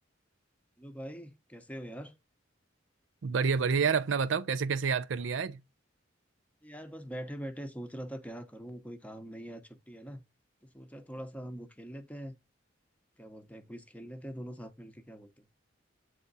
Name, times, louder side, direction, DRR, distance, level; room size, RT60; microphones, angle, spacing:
voice 1, 0.8-2.1 6.6-10.2 10.7-12.3 13.2-15.4, equal, 5° left, 0.7 m, -43 dB
voice 2, 3.2-5.6, right 5 dB, 75° right, 0.5 m, -28 dB
8.3 x 3.4 x 4.0 m
head